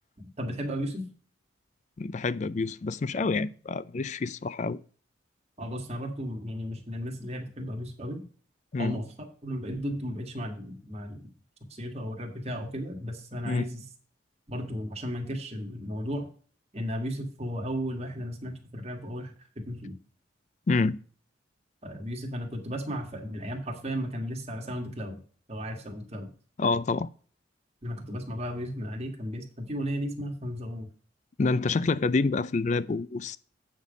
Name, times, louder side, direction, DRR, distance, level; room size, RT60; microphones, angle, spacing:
voice 1, 0.2-1.1 5.6-8.2 8.8-11.3 11.7-13.8 14.5-16.2 16.7-20.0 21.8-25.2 25.5-26.3 27.8-30.9, equal, 35° right, 1.7 m, -35 dB
voice 2, 2.0-4.8 8.7-9.0 13.4-13.7 20.7-21.0 26.6-27.1 31.4-33.4, left 3 dB, 40° left, 0.4 m, -27 dB
8.3 x 5.4 x 5.1 m
head